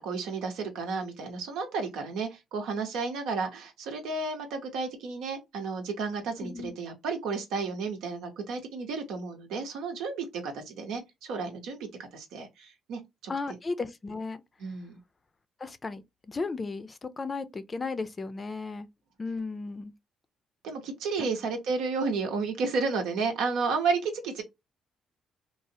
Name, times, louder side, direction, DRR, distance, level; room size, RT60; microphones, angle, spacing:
voice 1, 0.0-13.3 14.6-14.9 20.6-24.4, right 4 dB, 90° right, 0.9 m, -32 dB
voice 2, 6.4-6.7 13.3-14.4 15.6-18.9 19.2-19.9 21.2-21.3, left 3 dB, 30° left, 0.4 m, -35 dB
3.1 x 2.0 x 2.7 m
cardioid pair, 90°, 0 cm